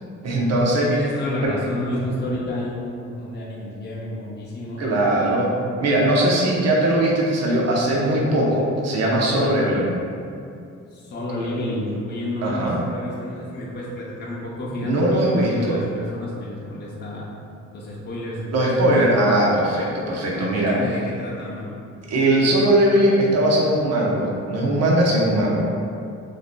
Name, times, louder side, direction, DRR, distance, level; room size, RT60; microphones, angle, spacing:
voice 1, 0.2-0.9 1.4-1.5 4.8-5.5 5.8-9.9 12.4-12.8 14.8-15.8 18.5-20.7 22.1-25.8, right 1 dB, 60° right, -3 dB, 0.9 m, -20 dB
voice 2, 0.9-4.8 10.9-17.3 17.7-18.9 20.3-21.7, left 1 dB, 35° left, -5 dB, 0.7 m, -30 dB
6.3 x 2.6 x 2.2 m, 2.5 s
cardioid pair, 90°, 30 cm